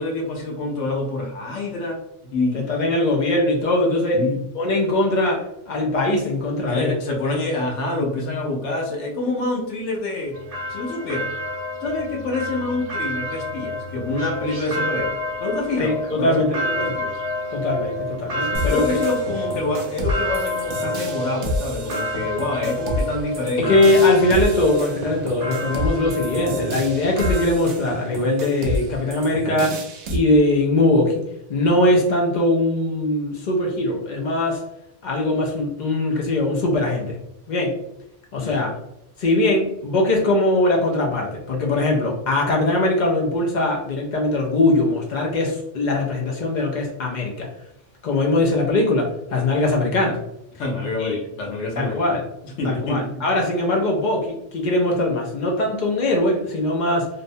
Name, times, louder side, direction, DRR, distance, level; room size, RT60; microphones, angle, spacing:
voice 1, 0.0-2.6 4.1-4.4 6.7-10.4 10.7-11.3 11.8-17.1 18.6-23.7 38.4-38.6 50.6-52.2 52.4-53.2, left 2 dB, 80° left, -1 dB, 0.9 m, -27 dB
voice 2, 2.5-4.3 4.5-6.9 15.8-17.0 17.5-18.9 23.6-29.8 30.1-31.2 31.5-34.6 35.0-37.2 37.5-37.8 38.3-38.7 39.2-47.5 48.0-50.2 51.0-51.2 51.8-52.2 52.6-57.1, left 2 dB, 55° left, -1 dB, 0.5 m, -21 dB
sound 1, 10.3-27.5, left 1 dB, 55° right, 0.4 m, -29 dB
sound 2, 18.5-30.2, equal, 75° right, 0.9 m, -29 dB
2.7 x 2.1 x 2.6 m, 0.82 s
omnidirectional pair, 1.2 m